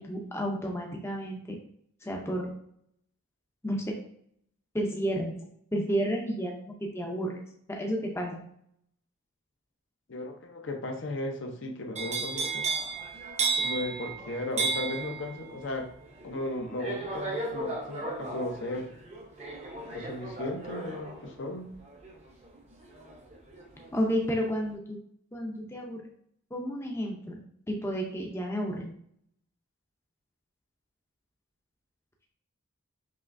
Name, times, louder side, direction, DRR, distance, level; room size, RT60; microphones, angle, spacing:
voice 1, 0.0-1.6 2.0-2.5 3.6-3.9 4.7-5.5 5.7-7.3 7.7-8.5 23.9-25.0 25.3-26.0 26.5-27.4 27.7-28.9, equal, 10° left, 0 dB, 0.5 m, -31 dB
voice 2, 10.1-12.7 13.5-15.9 16.2-18.9 19.9-21.7, left 1 dB, 60° left, 4 dB, 0.6 m, -35 dB
sound 1, 12.0-23.9 24.3-24.7, right 4 dB, 30° right, 0.6 m, -35 dB
5.6 x 3.0 x 2.5 m, 0.68 s
head